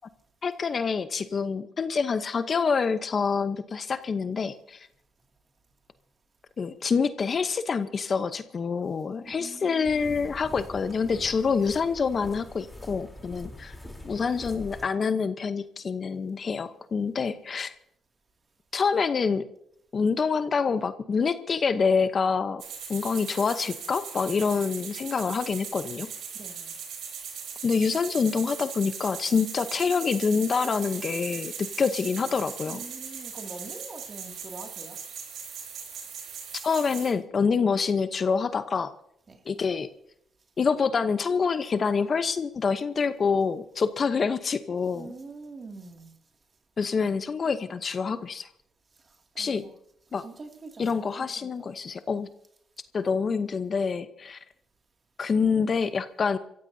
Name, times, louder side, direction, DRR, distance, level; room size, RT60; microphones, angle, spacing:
voice 1, 0.4-4.9 6.6-13.7 14.0-17.7 18.7-19.5 19.9-22.6 22.9-26.1 27.6-32.8 36.6-38.9 39.5-39.9 40.6-45.1 46.8-48.5 49.4-49.6 50.1-50.2 50.8-52.3 52.9-54.4 55.2-56.4, left 5 dB, 45° left, 0.8 m, -26 dB
voice 2, 9.2-10.4 26.3-26.7 32.6-35.0 39.3-39.4 44.9-46.2 49.0-49.7 50.2-51.7, right 3 dB, 35° right, 2.4 m, -44 dB
sound 1, 9.8-14.9, left 1 dB, 5° left, 3.6 m, -43 dB
sound 2, 22.6-37.1, right 7 dB, 75° right, 4.0 m, -39 dB
28.5 x 15.0 x 2.8 m
cardioid pair, 90°, 0 cm